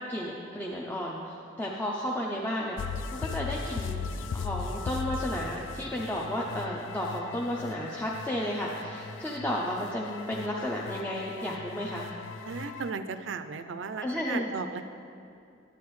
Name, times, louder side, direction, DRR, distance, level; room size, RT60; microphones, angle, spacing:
voice 1, 0.0-2.8 3.1-4.1 4.3-12.1 14.0-14.5, left 1 dB, 10° left, -4 dB, 0.5 m, -33 dB
sound 1, 2.8-12.9, left 5 dB, 80° left, 0.3 m, -38 dB
voice 2, 12.4-15.0, right 5 dB, 80° right, 10 dB, 0.4 m, -36 dB
9.7 x 9.3 x 3.1 m, 2.6 s
head